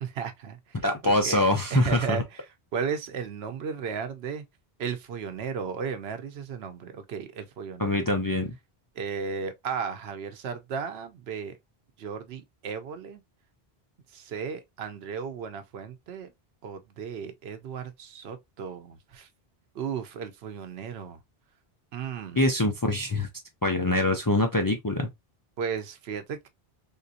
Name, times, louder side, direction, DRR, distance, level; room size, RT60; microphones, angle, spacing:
voice 1, 0.0-2.4 2.7-4.4 4.8-8.0 9.0-11.6 12.0-13.2 14.1-16.3 16.6-19.3 19.7-21.2 21.9-22.4 25.6-26.5, right 6 dB, 90° right, 0.9 m, -35 dB
voice 2, 0.8-2.2 7.8-8.5 22.4-23.3 23.6-25.1, left 1 dB, 35° left, 0.3 m, -24 dB
3.6 x 2.5 x 2.6 m
omnidirectional pair, 1.0 m